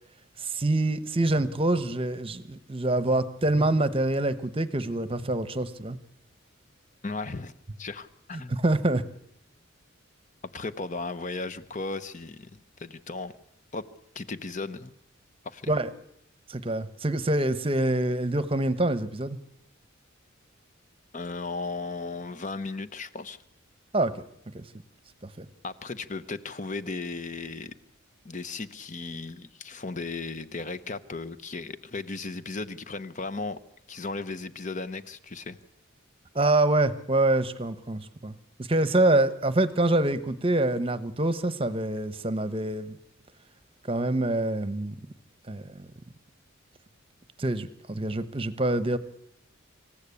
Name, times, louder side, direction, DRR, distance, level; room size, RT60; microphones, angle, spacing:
voice 1, 0.4-6.0 8.5-9.0 15.7-15.9 16.5-19.4 23.9-24.1 24.5-24.7 25.4-25.5 36.3-38.3 38.7-43.0 43.8-44.9 45.5-45.9 47.4-49.0, right 2 dB, 25° right, 13 dB, 1.0 m, -25 dB
voice 2, 7.0-7.5 7.8-8.6 10.4-13.3 13.7-13.8 14.1-14.9 15.4-15.7 21.1-23.4 25.6-27.7 28.2-33.6 33.9-35.6, left 3 dB, 35° left, 13 dB, 0.9 m, -36 dB
26.0 x 14.5 x 8.5 m, 0.79 s
head